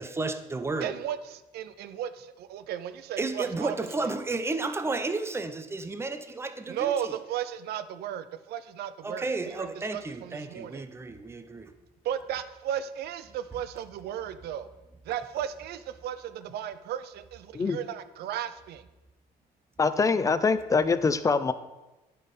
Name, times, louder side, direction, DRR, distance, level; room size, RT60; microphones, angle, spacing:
voice 1, 0.0-1.0 3.2-7.1 9.0-11.7, right 3 dB, 15° right, 9 dB, 0.6 m, -32 dB
voice 2, 0.8-4.1 6.7-10.8 12.0-14.7 15.1-18.8, right 10 dB, 70° right, 13 dB, 0.6 m, -35 dB
voice 3, 19.8-21.5, left 4 dB, 20° left, 13 dB, 0.5 m, -24 dB
10.5 x 4.4 x 5.4 m, 1.1 s
cardioid pair, 110°, 17 cm